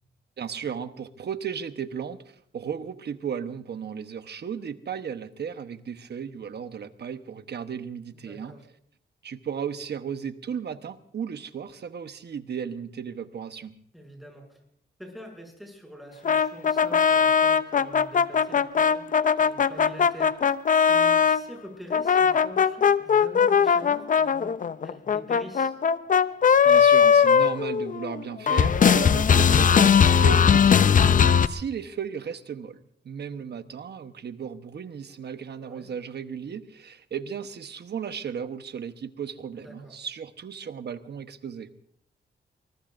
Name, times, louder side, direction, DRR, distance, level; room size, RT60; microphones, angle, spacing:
voice 1, 0.4-8.5 9.2-13.7 26.6-32.8 33.0-41.7, right 7 dB, 65° right, 10 dB, 1.1 m, -35 dB
voice 2, 8.1-8.6 13.9-14.6 15.0-20.5 20.9-24.5 24.8-25.7 35.6-35.9 39.6-39.9, equal, ahead, 1 dB, 6.6 m, -44 dB
sound 1, 16.2-21.4 21.9-28.2 28.5-31.5, left 7 dB, 45° left, 0.5 m, -19 dB
24.0 x 21.0 x 2.6 m, 0.66 s
cardioid pair, 95°, 19 cm